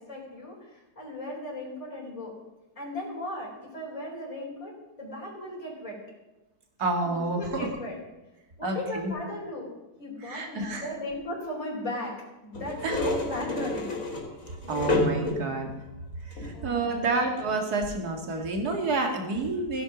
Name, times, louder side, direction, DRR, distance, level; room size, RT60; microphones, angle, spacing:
voice 1, 0.0-2.3 2.8-6.0 7.0-8.0 8.6-9.7 10.0-12.2 12.4-13.9 14.6-15.0 16.5-17.0, left 1 dB, 20° left, -3 dB, 3.9 m, -37 dB
voice 2, 6.8-7.7 8.6-9.1 10.2-10.9 12.8-13.0 14.5-15.7 16.2-19.8, right 3 dB, 65° right, 3 dB, 2.6 m, -29 dB
sound 1, 12.5-15.6 16.3-16.7 17.4-17.5, left 1 dB, 50° left, 3.0 m, -29 dB
15.0 x 11.0 x 6.1 m, 1.0 s
omnidirectional pair, 1.8 m